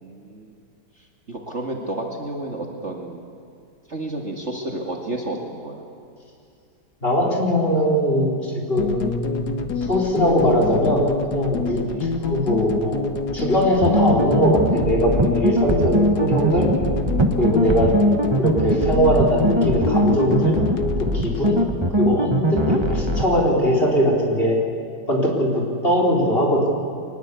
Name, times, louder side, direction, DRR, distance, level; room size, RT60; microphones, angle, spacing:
voice 1, 0.0-0.5 1.3-3.2 3.9-5.8 10.3-10.4 11.9-12.1 13.9-14.1 18.8-19.0, right 2 dB, 40° right, 1 dB, 2.3 m, -32 dB
voice 2, 7.0-16.7 17.4-17.9 18.4-20.6 21.0-21.6 21.9-24.6 25.1-26.7, equal, 30° left, -2 dB, 4.5 m, -21 dB
sound 1, 8.8-21.7, left 5 dB, 65° left, 1.7 m, -27 dB
sound 2, 13.8-23.2, right 1 dB, 15° right, 1.2 m, -21 dB
24.0 x 20.0 x 8.3 m, 2.4 s
omnidirectional pair, 2.0 m